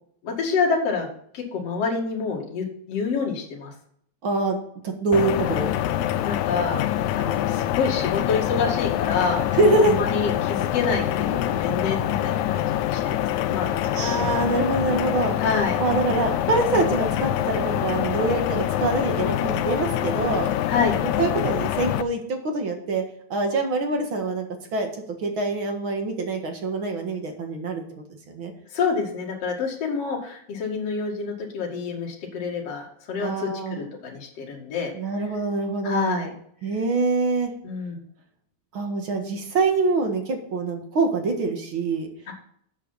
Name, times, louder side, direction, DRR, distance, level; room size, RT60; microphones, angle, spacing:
voice 1, 0.2-1.1 1.3-3.7 6.2-6.8 7.2-9.5 9.8-13.8 14.2-14.3 15.4-15.8 20.7-20.9 28.7-34.9 35.8-36.3 37.6-38.0 42.3-42.4, left 5 dB, 55° left, -1 dB, 3.2 m, -27 dB
voice 2, 4.2-4.6 4.8-5.7 9.5-10.0 13.9-15.4 15.8-20.5 21.2-23.0 23.3-24.5 24.7-24.9 25.2-28.5 33.2-33.8 34.9-36.3 36.6-37.5 38.7-42.1, right 3 dB, 45° right, 4 dB, 2.2 m, -25 dB
sound 1, 5.1-22.0, left 12 dB, 80° left, 2.0 m, -25 dB
12.5 x 8.1 x 4.2 m, 0.66 s
omnidirectional pair, 3.4 m